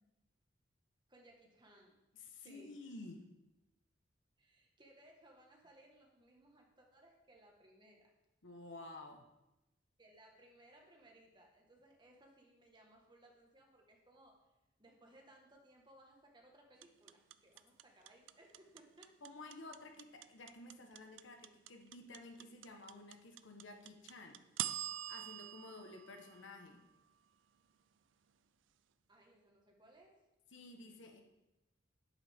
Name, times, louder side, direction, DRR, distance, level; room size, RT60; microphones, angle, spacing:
voice 1, 1.1-2.8 4.4-8.1 10.0-14.4 14.8-19.1 29.1-30.2, right 1 dB, 25° right, 0 dB, 1.5 m, -63 dB
voice 2, 2.1-3.2 8.4-9.2 19.2-24.4 25.1-26.8 30.5-31.2, left 2 dB, 80° left, 4 dB, 1.2 m, -52 dB
sound 1, 16.8-27.0, right 12 dB, 80° right, 0.4 m, -45 dB
10.5 x 8.5 x 3.6 m, 0.96 s
head